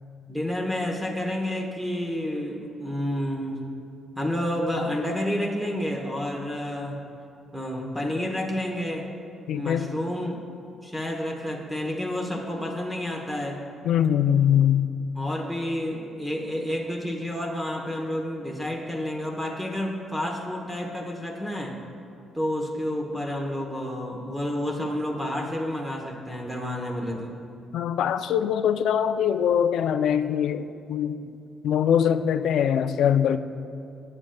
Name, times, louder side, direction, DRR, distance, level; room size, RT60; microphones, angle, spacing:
voice 1, 0.3-3.7 4.2-7.0 7.5-9.1 9.5-10.4 10.8-13.6 15.2-21.8 22.3-27.4, left 1 dB, 5° right, 1 dB, 0.9 m, -30 dB
voice 2, 9.5-9.9 13.8-14.9 27.7-31.2 31.6-33.4, left 9 dB, 75° left, 10 dB, 0.4 m, -22 dB
18.5 x 7.5 x 2.3 m, 2.6 s
cardioid pair, 130°, 0 cm